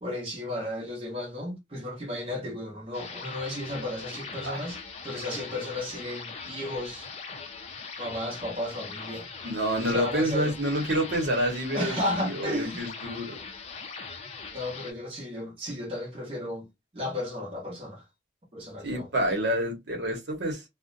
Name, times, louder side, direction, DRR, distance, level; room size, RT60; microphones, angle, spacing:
voice 1, 0.0-4.8 5.0-7.1 8.0-9.3 9.9-10.6 11.7-12.8 14.5-16.7 16.9-18.0 18.5-19.1, left 1 dB, 30° right, 0.9 m, -34 dB
sound 1, 2.9-14.9, left 5 dB, 35° left, 0.5 m, -41 dB
voice 2, 9.4-13.4 18.8-20.6, right 1 dB, 70° right, 1.0 m, -28 dB
2.5 x 2.1 x 2.5 m
head